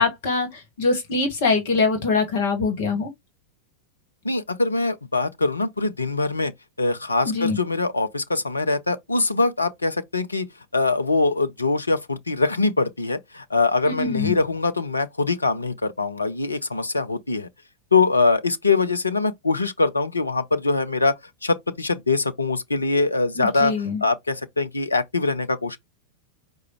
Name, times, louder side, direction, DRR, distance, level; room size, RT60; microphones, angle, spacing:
voice 1, 0.0-3.1 7.2-7.6 13.8-14.3 23.4-24.0, left 4 dB, 55° left, 1.3 m, -23 dB
voice 2, 4.2-6.5 6.8-10.5 10.7-17.5 17.9-25.8, left 3 dB, 80° left, 0.5 m, -23 dB
4.8 x 2.2 x 4.5 m
figure-of-eight pair, 90°, 0 cm